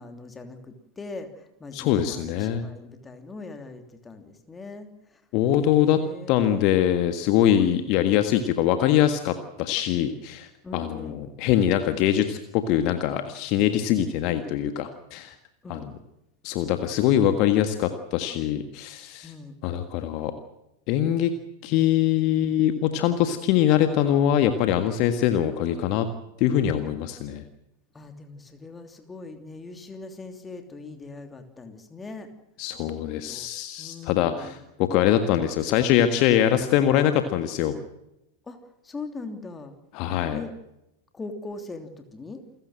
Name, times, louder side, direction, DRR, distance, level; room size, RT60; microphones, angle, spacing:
voice 1, 0.0-5.2 5.5-6.7 10.6-11.2 15.6-15.9 19.2-19.6 27.9-32.3 33.3-33.5 33.8-34.6 38.5-38.6 38.8-39.7 40.3-40.5 41.1-42.4, left 3 dB, 15° left, 7 dB, 3.0 m, -40 dB
voice 2, 1.7-2.7 5.3-6.0 6.3-10.5 10.7-15.3 15.7-15.8 16.4-19.3 19.6-20.3 20.9-21.3 21.6-26.1 26.4-27.4 32.6-37.8 39.9-40.4, left 11 dB, 40° left, 9 dB, 1.6 m, -23 dB
28.5 x 15.5 x 7.7 m, 0.87 s
figure-of-eight pair, 90°, 0 cm